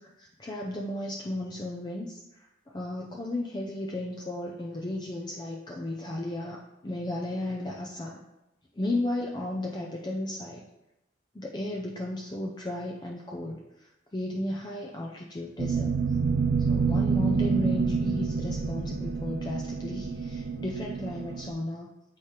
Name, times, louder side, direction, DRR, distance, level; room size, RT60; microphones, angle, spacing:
voice 1, 0.0-2.2 2.7-8.2 8.8-10.6 11.3-15.9 16.6-21.9, left 1 dB, 20° left, -1 dB, 0.4 m, -34 dB
sound 1, 15.6-21.5, right 5 dB, 55° right, 0.4 m, -28 dB
8.3 x 4.7 x 2.9 m, 0.95 s
head